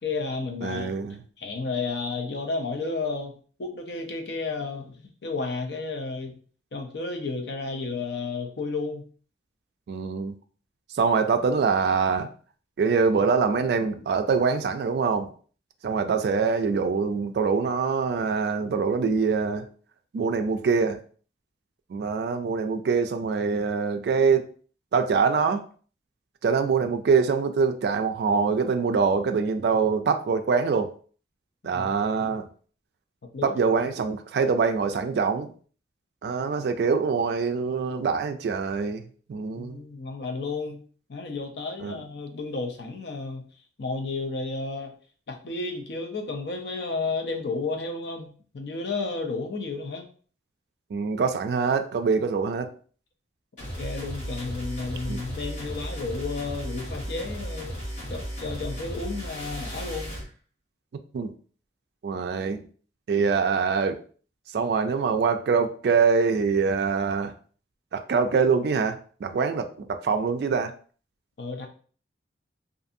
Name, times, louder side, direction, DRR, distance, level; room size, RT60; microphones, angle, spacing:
voice 1, 0.0-0.9 1.4-6.4 6.7-9.1 31.7-31.9 33.3-33.6 39.5-40.8 41.1-43.5 43.8-44.9 45.3-50.1 53.8-57.8 58.1-60.2 71.4-71.7, left 3 dB, 65° left, 3 dB, 0.5 m, -32 dB
voice 2, 0.6-1.2 9.9-10.4 10.9-12.3 12.8-15.3 15.8-19.7 20.1-21.0 21.9-24.5 24.9-25.6 26.4-30.9 31.6-32.5 33.4-35.5 36.2-39.8 41.8-41.9 50.9-52.7 55.1-55.2 61.1-61.3 62.0-62.6 63.1-64.0 64.5-67.3 67.9-70.7, right 5 dB, 60° right, 7 dB, 0.3 m, -24 dB
sound 1, 53.6-60.3, equal, 40° left, 1.2 m, -35 dB
2.6 x 2.5 x 2.5 m, 0.42 s
head